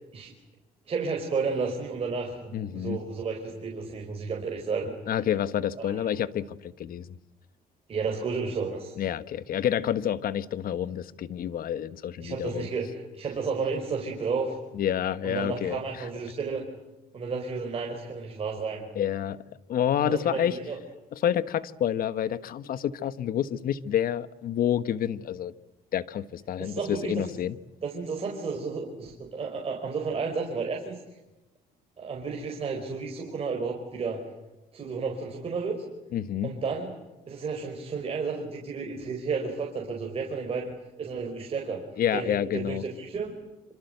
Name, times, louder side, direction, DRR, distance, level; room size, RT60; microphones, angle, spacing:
voice 1, 0.9-4.9 5.8-6.0 7.9-8.9 12.2-14.6 15.2-16.6 17.1-18.8 20.0-20.7 26.6-27.2 27.8-31.0 32.0-34.2 34.7-35.7 36.4-36.9 37.3-41.8 42.1-43.3, right 4 dB, 35° right, 0 dB, 5.1 m, -32 dB
voice 2, 2.5-3.0 5.1-7.1 9.0-12.7 14.7-16.1 18.9-19.4 19.7-20.6 21.1-25.5 25.9-27.6 36.1-36.5 42.0-42.8, left 10 dB, 60° left, 14 dB, 1.3 m, -28 dB
26.5 x 26.0 x 8.1 m, 1.0 s
cardioid pair, 110°, 17 cm